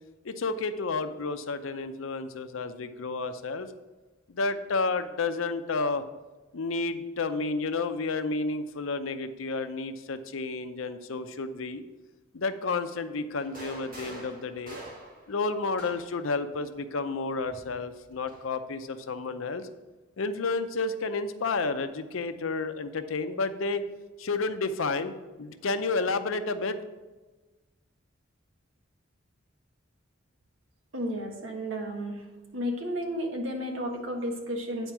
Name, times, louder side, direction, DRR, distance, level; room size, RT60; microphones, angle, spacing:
voice 1, 0.2-3.7 4.3-6.0 6.5-11.8 12.3-14.8 15.3-19.7 20.2-23.8 24.2-25.1 25.4-26.8, left 3 dB, 90° left, 10 dB, 0.6 m, -31 dB
sound 1, 13.4-16.3 17.4-18.5, right 1 dB, 45° right, 1.9 m, -45 dB
voice 2, 30.9-32.2 32.5-34.9, equal, 80° right, 2 dB, 1.5 m, -32 dB
9.2 x 4.5 x 6.0 m, 1.2 s
head